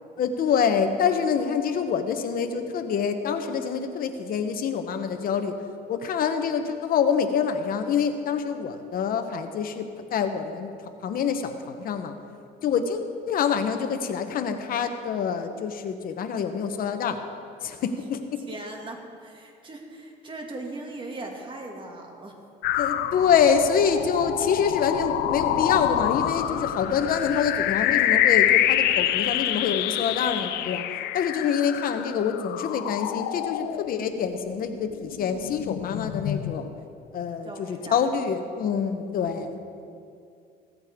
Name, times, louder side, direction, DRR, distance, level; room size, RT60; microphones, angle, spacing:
voice 1, 0.2-5.5 5.9-12.1 12.6-13.0 13.3-17.2 17.6-18.4 22.8-30.8 31.1-36.7 37.1-39.6, left 7 dB, 60° left, 7 dB, 1.0 m, -26 dB
voice 2, 18.5-22.3 37.4-38.0 39.0-39.5, right 2 dB, 30° right, 1 dB, 2.2 m, -39 dB
sound 1, 22.6-34.5 34.9-36.5, left 12 dB, 80° left, 0.6 m, -26 dB
17.0 x 14.0 x 3.6 m, 2.4 s
cardioid pair, 110°, 17 cm